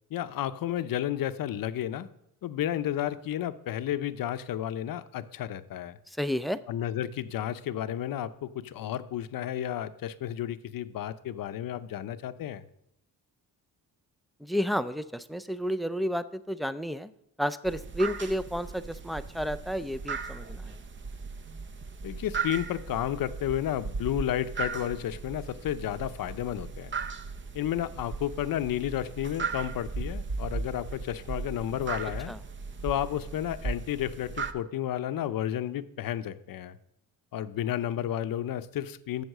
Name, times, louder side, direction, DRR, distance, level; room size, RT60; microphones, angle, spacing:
voice 1, 0.1-2.1 2.4-6.0 6.7-12.6 22.0-27.0 27.5-32.3 32.8-36.8 37.3-39.2, left 11 dB, 60° left, 12 dB, 0.7 m, -32 dB
voice 2, 6.1-6.6 14.4-17.1 17.4-20.7 32.3-32.4, equal, ahead, 13 dB, 0.4 m, -31 dB
sound 1, 17.7-34.5, right 4 dB, 30° right, 0.7 m, -37 dB
7.9 x 7.2 x 6.6 m, 0.77 s
cardioid pair, 95°, 38 cm